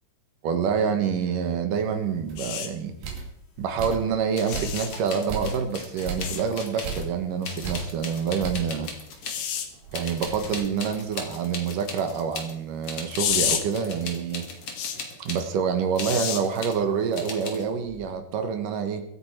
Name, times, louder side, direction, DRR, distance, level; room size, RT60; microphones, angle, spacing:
voice 1, 0.4-2.9 3.6-8.9 9.9-14.5 15.2-19.0, right 6 dB, 65° right, 7 dB, 2.5 m, -27 dB
sound 1, 2.3-2.5 3.0-3.4 3.8-4.1 4.5-4.9 5.3-5.6 6.1-6.4 6.8-7.2 7.6-7.9 8.4-8.8 9.1-9.2 9.7-11.2, right 4 dB, 80° right, 4.8 m, -34 dB
sound 2, 2.4-2.7 4.5-4.9 6.2-6.4 9.2-9.7 13.2-13.6 14.8-15.0 16.0-16.4 17.9-18.1, left 9 dB, 70° left, 3.1 m, -28 dB
sound 3, 3.6-3.7 4.3-7.1 7.4-9.6 9.9-12.5 12.8-15.5 15.9-16.8 17.1-17.6, left 4 dB, 45° left, 2.3 m, -38 dB
24.0 x 9.2 x 4.4 m, 0.79 s
omnidirectional pair, 4.9 m